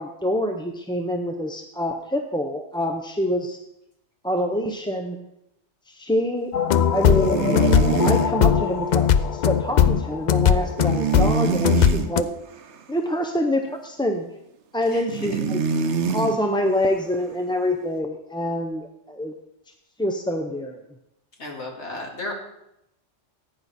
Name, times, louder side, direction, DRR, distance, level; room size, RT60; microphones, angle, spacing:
voice 1, 0.0-3.6 4.2-5.2 5.9-6.5 6.9-7.6 8.0-12.3 12.9-14.3 14.7-15.6 16.1-19.3 20.0-20.8, equal, 5° left, 4 dB, 0.5 m, -26 dB
sound 1, 6.5-12.2, left 8 dB, 55° left, 0.5 m, -19 dB
sound 2, 6.9-8.3 10.8-12.1 15.1-16.4, right 6 dB, 80° right, 1.1 m, -24 dB
voice 2, 21.4-22.3, left 2 dB, 75° left, 0 dB, 2.5 m, -34 dB
15.0 x 9.5 x 4.2 m, 0.82 s
omnidirectional pair, 1.2 m